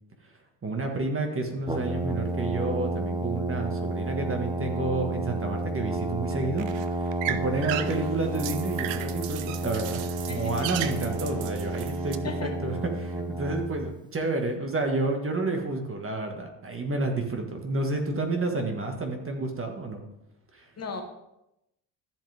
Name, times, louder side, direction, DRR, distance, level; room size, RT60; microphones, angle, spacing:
voice 1, 0.6-6.7 7.0-20.0 20.5-20.6, right 2 dB, 30° right, 4 dB, 1.8 m, -30 dB
Brass instrument, 1.7-13.9, right 2 dB, 10° right, 0.9 m, -31 dB
sound 1, 6.0-12.2, right 12 dB, 70° right, 0.9 m, -36 dB
voice 2, 10.3-10.7 12.2-12.5 20.8-21.0, left 5 dB, 35° left, 4 dB, 1.5 m, -36 dB
13.5 x 7.3 x 3.6 m, 0.87 s
supercardioid pair, 85°, 46 cm